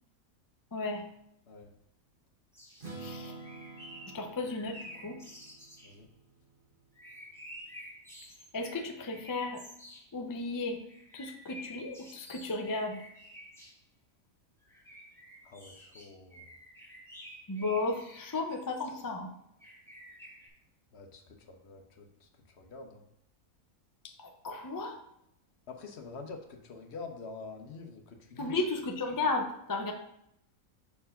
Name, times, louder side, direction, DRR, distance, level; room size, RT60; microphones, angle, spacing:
voice 1, 0.7-1.1 3.0-3.4 4.1-5.2 8.5-9.6 10.1-10.8 11.1-13.0 17.5-19.3 24.0-25.0 28.4-29.9, left 3 dB, 30° left, 3 dB, 0.3 m, -34 dB
sound 1, 2.5-3.0 3.4-6.0 6.9-10.1 10.9-13.8 14.6-19.1 19.6-20.5, equal, ahead, 1.2 m, -51 dB
Strum, 2.8-6.7, right 3 dB, 40° right, 1.7 m, -48 dB
voice 2, 15.4-16.5 20.9-23.0 25.7-28.6, left 4 dB, 55° left, 4 dB, 1.0 m, -47 dB
5.5 x 4.5 x 5.6 m, 0.77 s
omnidirectional pair, 1.5 m